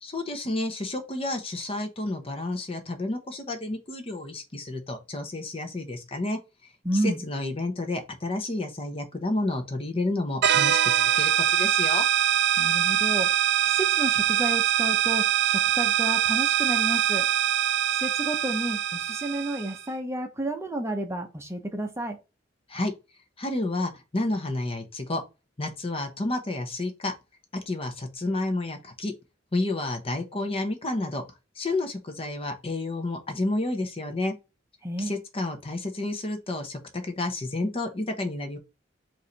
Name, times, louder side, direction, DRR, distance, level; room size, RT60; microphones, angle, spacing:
voice 1, 0.0-6.4 7.0-12.1 22.7-22.9 23.4-25.2 25.6-27.1 27.7-29.1 29.5-31.2 31.6-34.3 35.0-38.6, left 2 dB, 30° left, 0.9 m, -30 dB
voice 2, 6.8-7.2 12.6-13.3 13.6-17.3 17.9-22.2 34.8-35.1, right 1 dB, 15° right, 0.7 m, -31 dB
sound 1, 10.4-19.8, right 10 dB, 60° right, 0.4 m, -23 dB
4.7 x 2.7 x 4.0 m
head